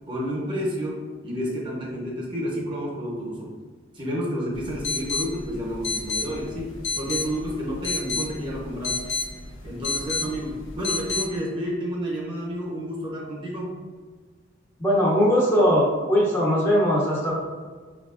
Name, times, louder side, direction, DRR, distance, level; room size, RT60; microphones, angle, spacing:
voice 1, 0.1-3.6 3.9-9.1 9.6-13.8, equal, 25° right, -4 dB, 0.7 m, -30 dB
sound 1, 4.5-11.3, left 3 dB, 75° left, 0.5 m, -31 dB
voice 2, 14.8-17.4, equal, 10° left, -5 dB, 0.6 m, -20 dB
4.8 x 2.3 x 2.4 m, 1.5 s
head